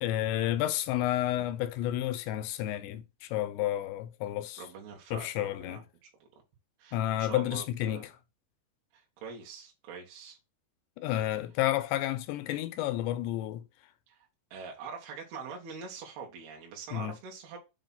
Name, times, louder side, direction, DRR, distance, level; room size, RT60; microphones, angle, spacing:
voice 1, 0.0-4.6 5.1-5.8 6.9-8.1 11.0-13.7 16.9-17.1, left 13 dB, 80° left, 2.7 m, -31 dB
voice 2, 4.6-6.3 6.8-8.1 8.9-10.4 14.1-14.2 14.5-17.6, right 5 dB, 65° right, 3.2 m, -44 dB
7.2 x 2.9 x 5.5 m
omnidirectional pair, 5.2 m